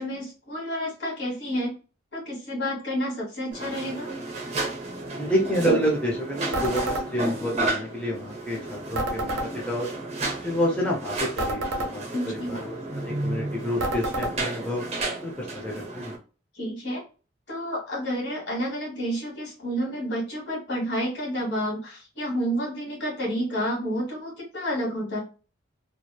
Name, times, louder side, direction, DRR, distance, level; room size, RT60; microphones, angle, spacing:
voice 1, 0.0-1.7 2.1-4.1 12.1-12.6 16.5-17.0 17.5-25.2, equal, 60° left, -2 dB, 1.2 m, -30 dB
sound 1, 3.5-16.2, right 2 dB, 35° right, 0.7 m, -32 dB
voice 2, 5.2-9.4 9.7-9.9 10.2-14.8 15.2-16.1, equal, 5° left, -4 dB, 0.5 m, -29 dB
sound 2, 6.5-7.1 8.9-9.5 11.4-11.9 13.8-14.3, right 1 dB, 90° right, 0.6 m, -28 dB
2.9 x 2.0 x 2.2 m, 0.35 s
head